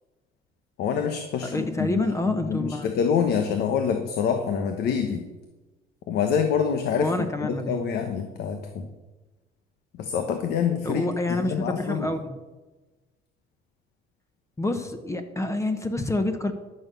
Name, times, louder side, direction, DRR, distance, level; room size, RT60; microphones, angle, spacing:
voice 1, 0.8-5.2 6.1-8.9 10.0-12.1, left 7 dB, 75° left, 6 dB, 1.1 m, -26 dB
voice 2, 1.5-2.9 7.0-7.8 10.8-12.4 14.6-16.5, left 1 dB, 15° left, 7 dB, 1.0 m, -27 dB
13.0 x 6.6 x 6.8 m, 1.2 s
cardioid pair, 110°, 17 cm